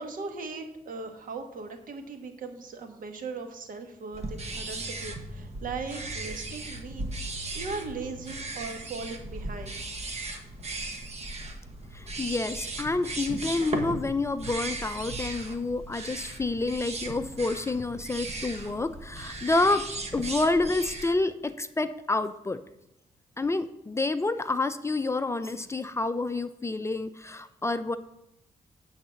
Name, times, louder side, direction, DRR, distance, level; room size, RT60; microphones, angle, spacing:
voice 1, 0.0-9.7, right 4 dB, 70° right, 5 dB, 1.3 m, -38 dB
sound 1, 4.1-21.1, right 2 dB, 50° right, 1.2 m, -37 dB
voice 2, 11.9-19.8 20.1-22.6 23.4-28.0, left 2 dB, 20° left, 11 dB, 0.4 m, -28 dB
8.5 x 4.0 x 6.8 m, 0.86 s
cardioid pair, 95°, 15 cm